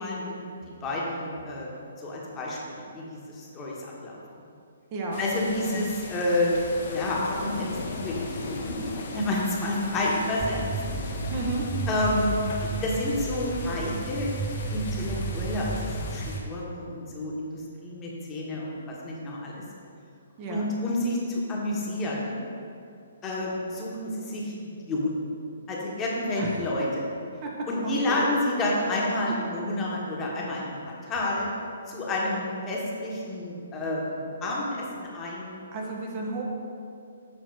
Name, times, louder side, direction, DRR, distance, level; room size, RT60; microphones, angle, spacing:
voice 1, 0.0-1.7 2.0-4.1 5.2-6.5 6.9-8.8 9.1-10.6 11.9-12.4 12.8-14.3 14.7-19.6 20.5-22.4 23.2-24.5 24.9-25.1 25.7-26.9 27.7-31.5 31.9-35.5, left 1 dB, 20° left, -4 dB, 1.3 m, -29 dB
voice 2, 4.9-5.2 5.6-5.9 11.3-11.7 20.4-20.7 26.4-26.6 27.4-27.5 27.8-28.3 35.7-36.4, right 2 dB, 35° right, -2 dB, 1.0 m, -32 dB
sound 1, 5.1-16.4, left 3 dB, 50° left, 0.9 m, -38 dB
sound 2, 10.4-16.4, right 3 dB, 5° right, 0.4 m, -33 dB
7.5 x 4.4 x 4.5 m, 2.5 s
figure-of-eight pair, 130°, 0 cm